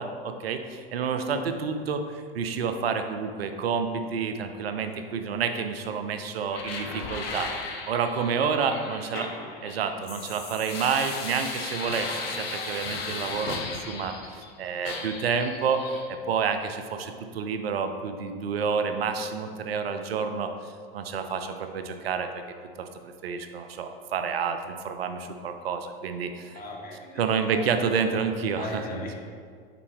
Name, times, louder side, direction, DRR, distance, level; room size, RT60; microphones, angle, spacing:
voice 1, 0.0-7.5 7.9-9.3 9.6-14.1 14.6-15.8 16.1-20.5 20.9-22.4 22.8-22.9 23.2-26.6 27.2-29.1, right 6 dB, 80° right, 7 dB, 0.6 m, -29 dB
voice 2, 4.8-5.4 8.9-9.5 26.5-27.8 28.5-29.1, left 2 dB, 30° left, -1 dB, 1.2 m, -40 dB
sound 1, 6.5-14.5 14.8-16.1, left 4 dB, 70° left, 0.9 m, -36 dB
5.8 x 4.6 x 3.5 m, 2.1 s
hypercardioid pair, 90°, 30 cm